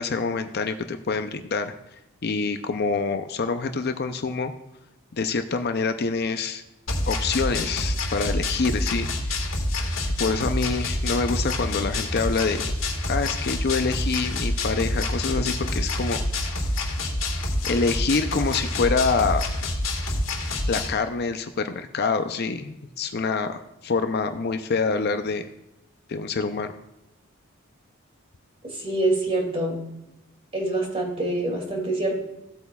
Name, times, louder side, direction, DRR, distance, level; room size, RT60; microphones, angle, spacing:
voice 1, 0.0-1.7 2.2-4.5 5.1-6.6 7.1-9.5 10.2-12.7 13.1-16.2 17.6-19.4 20.7-25.4 26.1-26.7, left 4 dB, 50° left, 8 dB, 0.5 m, -26 dB
sound 1, 6.9-20.9, left 1 dB, 75° left, 1.8 m, -27 dB
voice 2, 28.7-29.8 30.5-32.1, right 2 dB, 30° right, 1 dB, 2.3 m, -25 dB
15.5 x 8.2 x 2.3 m, 0.92 s
head